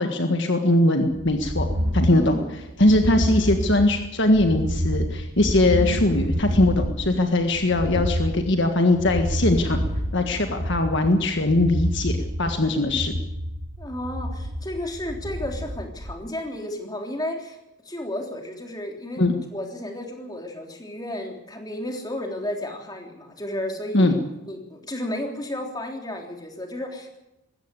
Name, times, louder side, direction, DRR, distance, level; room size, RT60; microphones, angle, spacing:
voice 1, 0.0-1.7 1.9-2.4 2.8-9.8 10.1-13.1 19.2-19.3 23.9-24.1, left 1 dB, 55° left, 5 dB, 1.6 m, -21 dB
sound 1, 1.2-16.1, equal, 65° right, 3.6 m, -28 dB
voice 2, 2.1-2.5 13.8-17.6 17.8-19.2 19.5-24.2 24.5-27.2, left 1 dB, 20° left, 2 dB, 3.4 m, -32 dB
20.5 x 16.0 x 8.3 m, 0.93 s
head